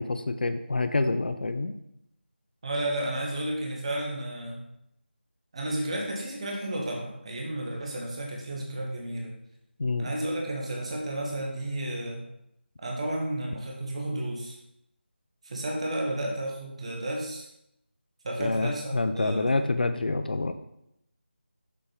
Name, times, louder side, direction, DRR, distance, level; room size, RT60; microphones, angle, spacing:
voice 1, 0.0-1.7 9.8-10.1 18.4-20.5, left 3 dB, 55° left, 9 dB, 0.4 m, -27 dB
voice 2, 2.6-4.6 5.5-9.3 10.0-12.2 12.8-14.6 15.4-17.5 18.2-19.5, right 1 dB, 30° right, -1 dB, 1.0 m, -32 dB
6.6 x 3.5 x 5.2 m, 0.79 s
figure-of-eight pair, 170°, 6 cm